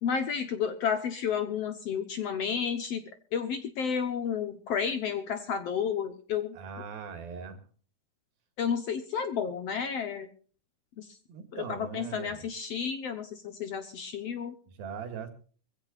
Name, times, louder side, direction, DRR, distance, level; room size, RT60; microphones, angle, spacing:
voice 1, 0.0-3.0 3.3-6.6 8.6-10.3 11.0-11.1 11.5-14.5, left 7 dB, 65° left, 9 dB, 1.6 m, -31 dB
voice 2, 6.5-7.6 11.3-12.4 14.7-15.3, right 6 dB, 80° right, 8 dB, 3.8 m, -40 dB
23.5 x 15.5 x 2.5 m, 0.42 s
omnidirectional pair, 4.1 m